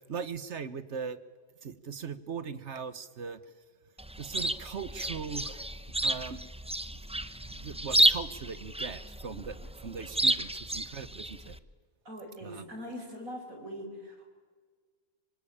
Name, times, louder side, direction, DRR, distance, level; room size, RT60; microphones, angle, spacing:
voice 1, 0.1-1.2 1.6-3.5 4.2-5.7 6.0-6.5 6.9-11.6 12.4-12.7, right 6 dB, 55° right, 14 dB, 1.4 m, -40 dB
Chirp tweet, 4.0-11.6, right 1 dB, 5° right, 0.5 m, -31 dB
voice 2, 12.0-14.3, equal, 70° right, 2 dB, 5.9 m, -42 dB
25.5 x 25.0 x 8.7 m, 1.5 s
omnidirectional pair, 1.5 m